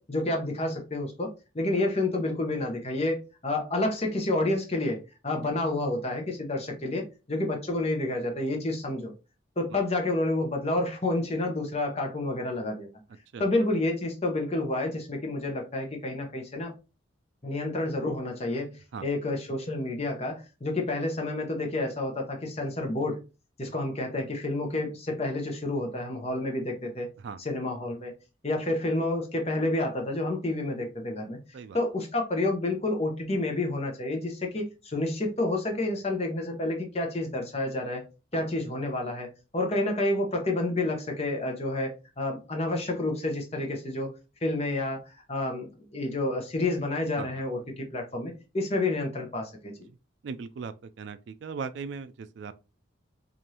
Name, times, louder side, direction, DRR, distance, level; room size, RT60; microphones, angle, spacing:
voice 1, 0.0-5.0 5.2-9.1 9.6-12.9 13.4-16.7 17.4-18.7 19.0-23.2 23.6-27.1 27.4-28.1 28.4-31.4 31.7-38.0 38.3-39.3 39.5-44.1 44.4-49.7, left 2 dB, 30° left, 0.8 m, -29 dB
voice 2, 50.2-52.5, right 5 dB, 60° right, 0.3 m, -38 dB
4.8 x 2.6 x 2.8 m
head